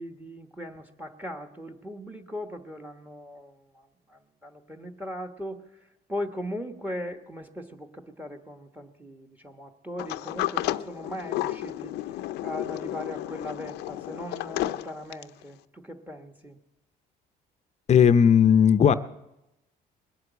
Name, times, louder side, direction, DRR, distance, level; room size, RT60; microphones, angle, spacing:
voice 1, 0.0-16.6, equal, 10° right, 6 dB, 1.2 m, -39 dB
Sliding door, 10.0-15.4, left 15 dB, 85° left, 0.6 m, -32 dB
voice 2, 17.9-18.9, left 8 dB, 40° left, 11 dB, 0.6 m, -17 dB
21.0 x 8.0 x 8.1 m, 0.92 s
cardioid pair, 110°, 17 cm